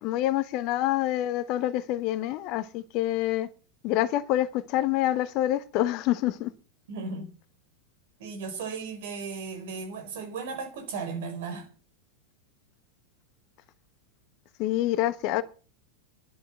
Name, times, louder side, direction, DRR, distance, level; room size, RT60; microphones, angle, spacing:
voice 1, 0.0-3.5 3.8-6.5 14.6-15.4, left 14 dB, 40° left, 1.2 m, -27 dB
voice 2, 6.9-7.3 8.2-11.7, right 4 dB, 55° right, 4.1 m, -36 dB
11.5 x 11.0 x 7.5 m
figure-of-eight pair, 90°, 0 cm